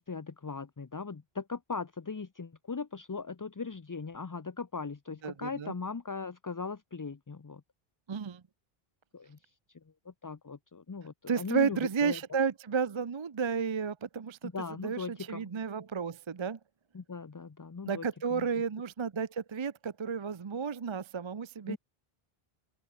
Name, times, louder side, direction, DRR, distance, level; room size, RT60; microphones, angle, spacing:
voice 1, 0.0-7.6 9.1-9.4 10.1-12.2 14.4-15.5 16.9-18.0 18.3-18.4 21.7-21.8, left 4 dB, 30° left, 0.4 m, -39 dB
voice 2, 5.2-5.7 8.1-8.4 11.3-14.5 14.8-16.6 17.8-21.8, right 6 dB, 35° right, 0.5 m, -32 dB
open air
omnidirectional pair, 1.0 m